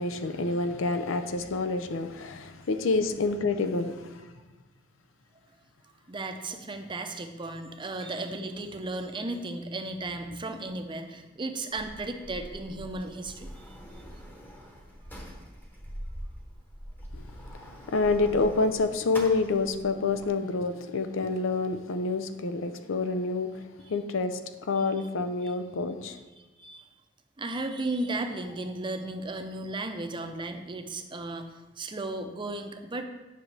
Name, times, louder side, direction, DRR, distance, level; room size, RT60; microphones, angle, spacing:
voice 1, 0.0-4.3 17.1-17.3 17.5-23.6 23.9-26.2, left 3 dB, 90° left, 9 dB, 0.6 m, -28 dB
voice 2, 6.1-13.5 24.8-24.9 26.4-26.9 27.4-33.0, right 2 dB, 25° right, 6 dB, 0.6 m, -35 dB
Sliding door, 11.7-20.3, equal, 10° left, 1.0 m, -44 dB
9.5 x 5.8 x 3.3 m, 1.2 s
head